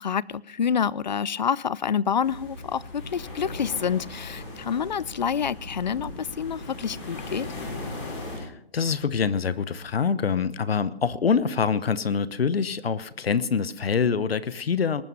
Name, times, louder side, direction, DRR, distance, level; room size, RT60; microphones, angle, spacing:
voice 1, 0.0-7.5, left 7 dB, 45° left, 24 dB, 0.4 m, -27 dB
sound 1, 2.2-8.4, left 2 dB, 30° left, 5.5 m, -38 dB
voice 2, 8.4-15.0, left 6 dB, 70° left, 16 dB, 1.0 m, -25 dB
19.5 x 9.3 x 5.5 m, 0.73 s
hypercardioid pair, 155°, 31 cm